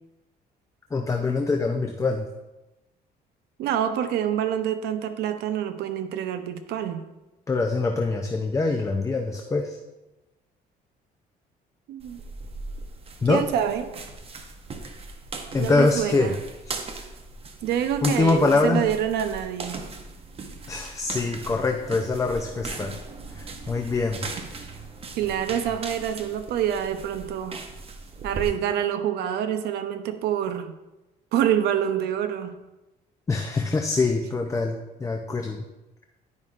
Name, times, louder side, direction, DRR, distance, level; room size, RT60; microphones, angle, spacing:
voice 1, 0.9-2.3 7.5-9.8 13.2-13.4 15.5-16.4 16.7-16.8 18.0-18.8 20.7-22.9 23.3-24.2 33.3-35.7, left 3 dB, 20° left, 3 dB, 0.5 m, -24 dB
voice 2, 3.6-7.0 11.9-12.2 13.3-13.9 15.6-16.4 17.6-19.8 25.1-27.6 28.2-30.7 31.3-32.6, right 9 dB, 75° right, 9 dB, 0.7 m, -26 dB
sound 1, 12.0-28.5, right 3 dB, 35° right, 0.8 m, -38 dB
10.5 x 5.3 x 2.5 m, 1.0 s
cardioid pair, 110°, 17 cm